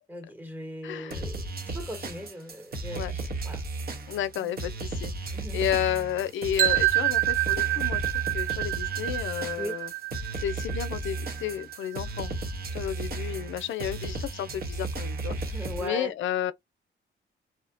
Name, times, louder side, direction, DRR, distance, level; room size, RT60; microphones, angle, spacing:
voice 1, 0.1-1.5 1.7-3.6 4.4-4.5 5.3-5.6 9.6-9.8 15.3-16.1, equal, 10° right, 1.0 m, -39 dB
voice 2, 0.8-1.2 2.9-3.1 4.1-8.0 8.3-9.9 10.4-12.3 12.7-15.4 15.8-16.5, left 10 dB, 75° left, 0.5 m, -32 dB
sound 1, 1.1-15.9, right 2 dB, 50° right, 0.7 m, -34 dB
sound 2, 6.6-12.5, right 17 dB, 80° right, 0.5 m, -28 dB
2.7 x 2.1 x 2.5 m
cardioid pair, 120°, 20 cm